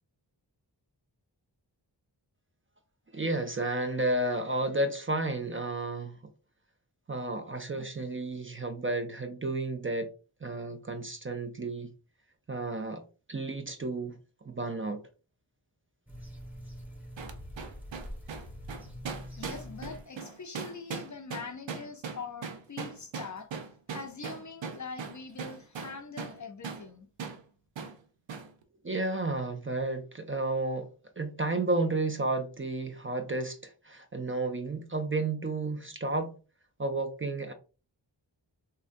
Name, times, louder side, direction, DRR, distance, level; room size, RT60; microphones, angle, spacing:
voice 1, 3.1-6.2 7.1-10.1 10.4-11.9 12.5-13.0 13.3-14.2 14.4-15.0 28.8-30.9 31.2-36.3 36.8-37.5, right 2 dB, 30° right, 0.4 m, -32 dB
sound 1, 16.1-20.0 20.2-20.3, equal, 5° right, 0.8 m, -44 dB
sound 2, 17.2-26.4 26.6-26.9 27.2-27.4 27.8-28.0 28.3-28.5, right 5 dB, 80° right, 0.6 m, -39 dB
voice 2, 19.4-23.5 23.9-27.1, left 5 dB, 45° left, 0.5 m, -43 dB
3.6 x 2.1 x 2.5 m
wide cardioid pair, 70°, 44 cm